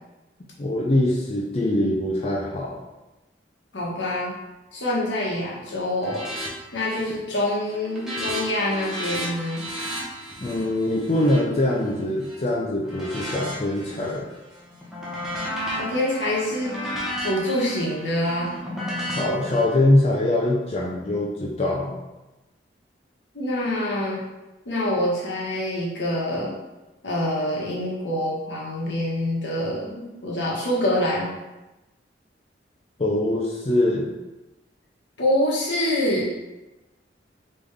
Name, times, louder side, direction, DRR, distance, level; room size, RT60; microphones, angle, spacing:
voice 1, 0.6-2.8 10.4-14.3 19.0-22.0 33.0-34.1, left 1 dB, 35° left, -3 dB, 0.5 m, -23 dB
voice 2, 3.7-4.3 4.7-6.3 6.7-9.6 15.7-16.9 17.2-18.5 23.3-24.2 24.6-26.5 27.0-31.3 35.2-36.3, left 1 dB, 80° left, -5 dB, 1.3 m, -25 dB
sound 1, 6.0-6.5 6.8-7.2 7.5-12.4 12.9-14.2 14.6-19.6, equal, ahead, 1.0 m, -33 dB
3.8 x 3.5 x 3.4 m, 1.0 s
head